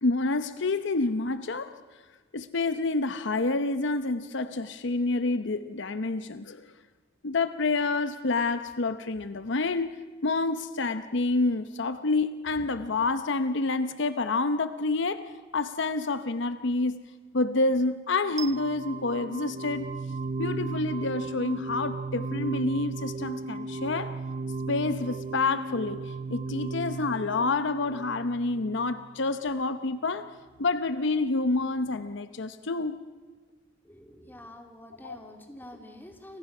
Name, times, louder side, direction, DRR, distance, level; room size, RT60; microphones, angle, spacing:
voice 1, 0.0-1.7 2.3-6.7 7.2-17.0 17.3-19.9 20.4-24.1 24.7-30.3 30.6-33.0 35.0-35.2, left 3 dB, 65° left, 11 dB, 0.8 m, -28 dB
sound 1, 18.4-29.3, right 3 dB, 35° right, 0.7 m, -35 dB
voice 2, 33.8-36.4, left 1 dB, 10° left, 4 dB, 2.8 m, -47 dB
30.0 x 25.0 x 6.0 m, 1.4 s
head